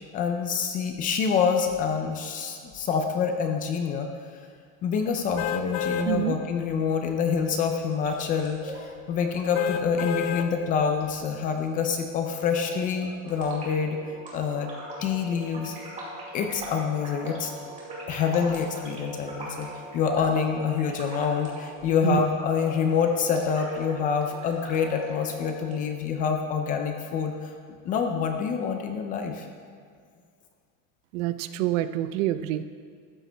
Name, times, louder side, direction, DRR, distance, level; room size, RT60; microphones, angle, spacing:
voice 1, 0.1-4.1 4.8-14.0 14.3-14.7 15.0-15.8 16.3-17.5 18.1-27.5 27.9-29.5, left 6 dB, 25° left, 5 dB, 0.3 m, -26 dB
sound 1, 5.4-6.1 6.6-6.7 9.5-10.5 11.0-11.1, left 8 dB, 60° left, 0.7 m, -29 dB
voice 2, 6.0-6.4 22.0-22.2 31.1-32.6, right 15 dB, 80° right, 12 dB, 0.6 m, -26 dB
sound 2, 7.8-25.8, right 1 dB, 20° right, 2.4 m, -41 dB
13.0 x 7.8 x 3.3 m, 2.1 s
cardioid pair, 165°, 39 cm